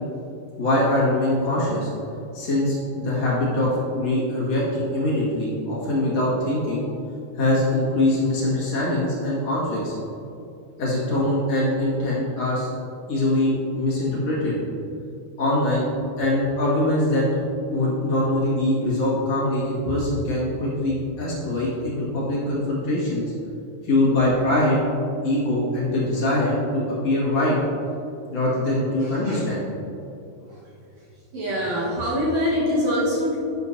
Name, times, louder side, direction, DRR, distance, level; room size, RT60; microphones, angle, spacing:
voice 1, 0.6-1.9 2.3-6.8 7.4-9.9 10.8-12.7 13.1-14.6 15.4-15.9 16.2-17.2 17.7-23.3 23.8-24.8 25.2-27.6 28.3-29.7, left 1 dB, 50° left, -7 dB, 2.9 m, -23 dB
voice 2, 29.0-29.4 31.3-33.4, equal, 60° right, -5 dB, 2.4 m, -24 dB
11.0 x 9.7 x 2.7 m, 2.7 s
omnidirectional pair, 4.0 m